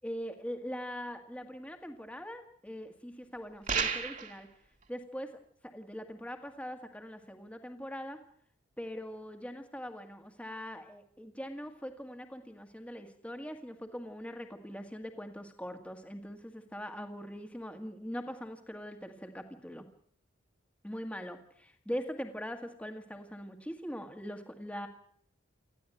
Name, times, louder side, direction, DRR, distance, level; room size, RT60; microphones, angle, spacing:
voice 1, 0.0-4.5 4.9-5.3 5.6-8.2 8.8-19.9 20.8-24.9, equal, 5° left, 5 dB, 1.9 m, -42 dB
sound 1, 3.7-4.4, right 6 dB, 40° right, 2.1 m, -31 dB
20.5 x 14.5 x 9.1 m, 0.63 s
head